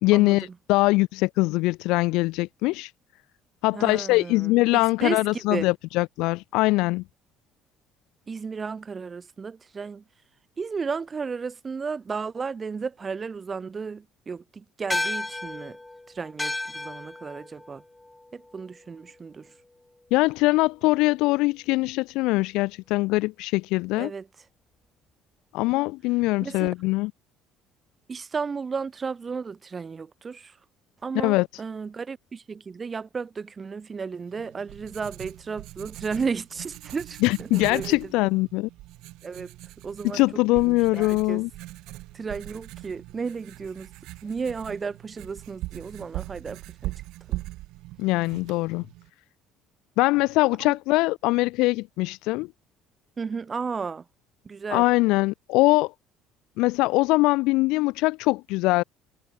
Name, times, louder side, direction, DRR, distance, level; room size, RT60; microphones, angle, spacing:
voice 1, 0.0-2.9 3.6-7.0 20.1-24.1 25.5-27.1 31.1-31.5 37.2-38.7 40.1-41.5 48.0-48.8 50.0-52.5 54.7-55.9 56.6-58.8, left 22 dB, 70° left, 0.6 m, -22 dB
voice 2, 3.7-5.7 8.3-10.0 10.6-15.8 16.1-17.8 18.3-19.5 23.9-24.3 26.4-26.7 28.1-30.5 31.0-38.3 39.2-39.5 39.8-41.4 42.1-43.9 44.2-46.9 47.3-47.4 53.2-54.0 54.4-54.9, right 5 dB, 35° right, 2.1 m, -34 dB
sound 1, 14.9-19.6, left 2 dB, 15° left, 4.2 m, -34 dB
Writing, 34.3-49.1, right 19 dB, 70° right, 1.1 m, -41 dB
hypercardioid pair, 60°, 0 cm